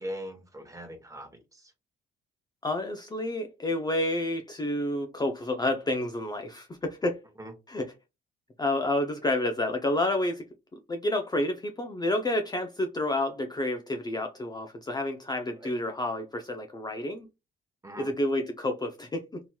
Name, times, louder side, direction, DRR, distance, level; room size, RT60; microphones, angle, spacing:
voice 1, 0.0-1.7 7.4-7.5 15.6-15.7 17.8-18.1, equal, 15° right, 1.0 m, -40 dB
voice 2, 2.6-7.2 7.7-7.9 8.6-10.4 10.9-17.3 18.0-19.4, left 1 dB, 20° left, 0.5 m, -29 dB
3.0 x 2.8 x 2.3 m
cardioid pair, 90°, 20 cm